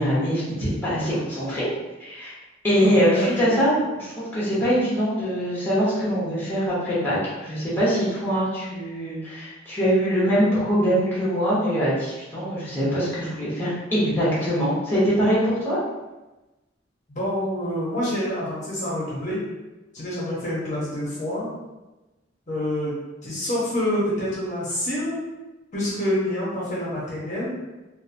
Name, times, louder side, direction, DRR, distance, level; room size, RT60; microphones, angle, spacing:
voice 1, 0.0-1.7 2.0-2.3 2.6-15.8, equal, 10° left, -9 dB, 0.9 m, -23 dB
voice 2, 2.8-3.5 17.1-19.4 19.9-21.5 22.5-25.2 25.7-27.5, left 1 dB, 40° left, -7 dB, 0.7 m, -27 dB
2.9 x 2.1 x 2.5 m, 1.1 s
head